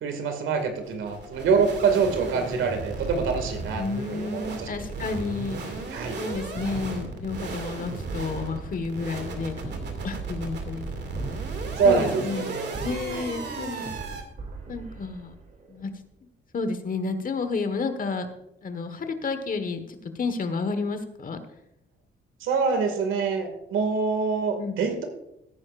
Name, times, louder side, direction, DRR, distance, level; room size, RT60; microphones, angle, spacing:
voice 1, 0.0-4.7 5.9-6.2 11.6-12.8 13.1-13.2 22.4-25.0, right 5 dB, 80° right, 6 dB, 2.2 m, -25 dB
sound 1, 0.6-14.2, right 3 dB, 60° right, 2.4 m, -35 dB
voice 2, 3.7-5.8 6.2-11.2 11.8-12.5 12.8-13.9 14.7-15.3 15.7-15.9 16.5-18.3 18.6-21.4 24.5-24.8, left 4 dB, 45° left, 9 dB, 1.4 m, -31 dB
sound 2, 6.5-16.0, right 3 dB, 45° right, 2.9 m, -41 dB
17.0 x 9.6 x 2.5 m, 0.84 s
cardioid pair, 90°, 20 cm